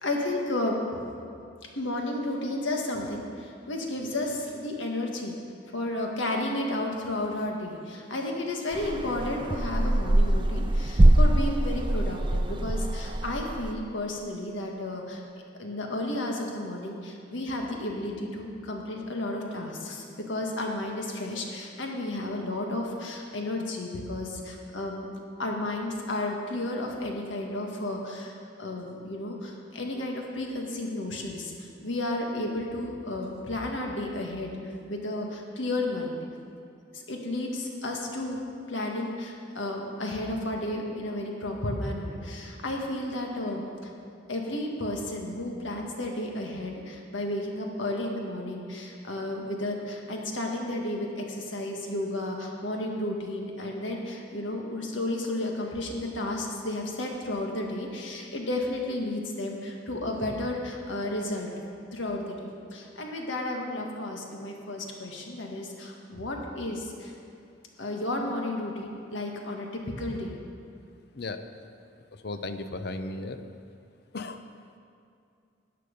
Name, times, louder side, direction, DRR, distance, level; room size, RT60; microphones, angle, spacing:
voice 1, 0.0-1.0 1.7-5.4 5.7-15.2 15.6-25.1 25.4-34.5 34.9-36.2 36.9-38.4 38.7-43.9 44.3-61.5 61.9-67.1 67.8-70.3, left 1 dB, 75° left, 1 dB, 1.7 m, -32 dB
sound 1, 8.7-13.7, right 1 dB, 25° right, 0.5 m, -23 dB
voice 2, 72.1-73.4 74.1-74.4, left 2 dB, 55° left, 9 dB, 0.6 m, -35 dB
13.5 x 9.5 x 5.2 m, 2.5 s
head